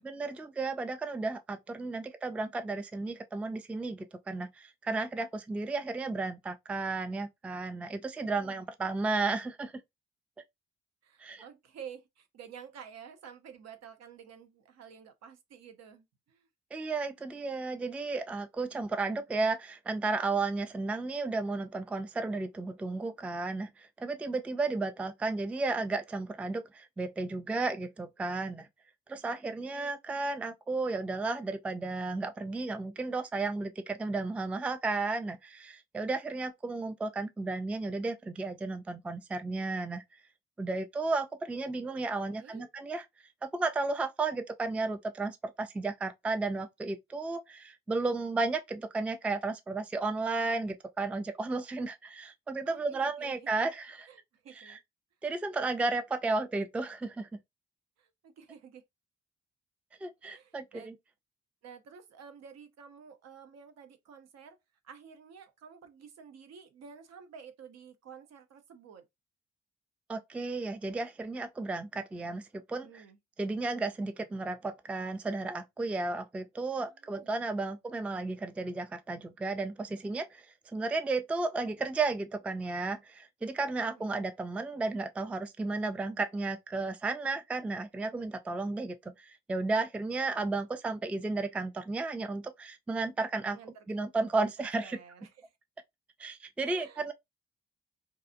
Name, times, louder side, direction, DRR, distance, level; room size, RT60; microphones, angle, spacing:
voice 1, 0.0-9.7 11.2-11.4 16.7-28.7 29.1-40.0 40.6-43.0 43.4-54.1 54.5-54.8 55.2-57.3 60.0-60.9 70.1-73.0 73.4-80.5 80.7-93.6 93.9-95.0 96.2-97.1, right 3 dB, 5° right, 0.3 m, -33 dB
voice 2, 8.1-8.7 11.0-16.5 29.7-29.9 42.2-42.7 52.6-53.5 54.1-54.8 58.0-58.8 60.3-60.9 61.6-64.6 64.8-69.1 72.8-73.2 76.8-77.7 83.5-84.1 93.5-93.9 94.6-95.3 96.6-97.0, right 7 dB, 60° right, 0.7 m, -51 dB
2.6 x 2.3 x 2.5 m
hypercardioid pair, 40°, 30 cm